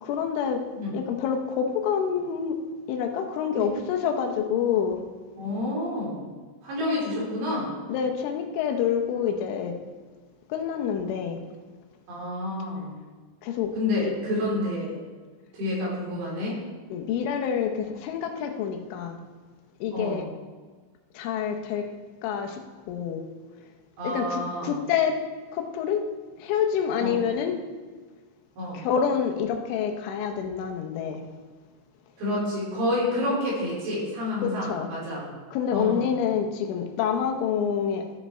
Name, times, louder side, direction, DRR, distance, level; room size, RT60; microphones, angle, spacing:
voice 1, 0.0-0.6 0.9-2.6 2.9-5.0 6.8-7.1 7.9-9.8 10.5-11.4 13.4-13.7 16.9-19.2 19.8-20.2 21.1-21.9 22.2-22.6 22.9-23.2 24.0-25.2 25.5-26.1 26.4-27.6 28.7-31.2 34.4-34.9 35.5-38.0, left 7 dB, 80° left, 4 dB, 3.3 m, -27 dB
voice 2, 5.4-6.3 6.6-7.7 12.1-13.0 13.8-15.0 15.5-16.6 19.9-20.3 24.0-24.8 27.0-27.2 28.6-28.8 32.2-35.3 35.7-36.1, left 1 dB, 65° right, -6 dB, 5.3 m, -29 dB
14.0 x 5.8 x 4.3 m, 1.4 s
omnidirectional pair, 5.6 m